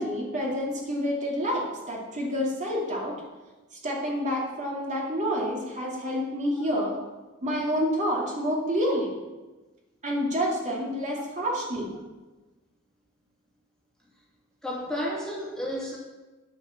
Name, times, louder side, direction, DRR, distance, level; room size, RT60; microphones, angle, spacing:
voice 1, 0.0-3.2 3.8-7.0 7.4-9.1 10.0-11.9, equal, 35° right, -3 dB, 2.4 m, -28 dB
voice 2, 14.6-16.0, equal, 5° left, -4 dB, 2.4 m, -31 dB
9.8 x 7.6 x 7.1 m, 1.2 s
head